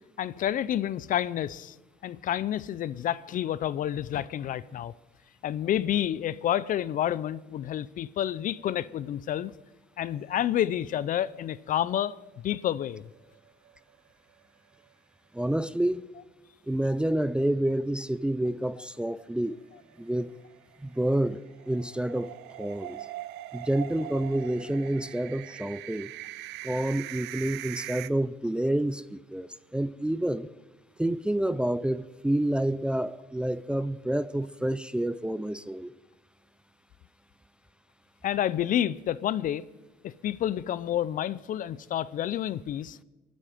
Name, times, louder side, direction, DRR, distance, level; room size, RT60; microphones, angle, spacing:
voice 1, 0.2-1.7 2.0-4.9 5.4-9.5 10.0-12.1 12.4-13.0 38.2-39.6 40.0-43.0, left 11 dB, 50° left, 0.5 m, -29 dB
sound 1, 13.1-14.1 14.4-14.5 14.8-14.9 19.1-28.1, right 16 dB, 85° right, 0.5 m, -42 dB
voice 2, 15.3-16.1 16.7-19.6 20.0-20.3 20.8-23.0 23.5-26.1 26.6-30.5 31.0-35.9, right 1 dB, 5° right, 0.4 m, -28 dB
23.0 x 9.5 x 5.0 m
cardioid pair, 110°, 17 cm